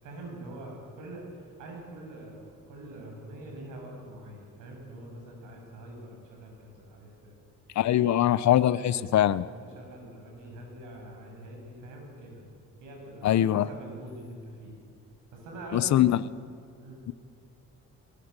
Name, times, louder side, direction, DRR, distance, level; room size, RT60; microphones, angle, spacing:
voice 1, 0.0-7.4 7.8-8.1 8.7-12.4 12.8-14.7 15.3-16.1 16.8-17.1, right 1 dB, 90° right, 1 dB, 8.0 m, -44 dB
voice 2, 7.8-9.4 13.2-13.7 15.7-16.2 17.1-17.2, left 12 dB, 65° left, 17 dB, 0.9 m, -22 dB
22.0 x 22.0 x 8.2 m, 2.3 s
cardioid pair, 90°, 30 cm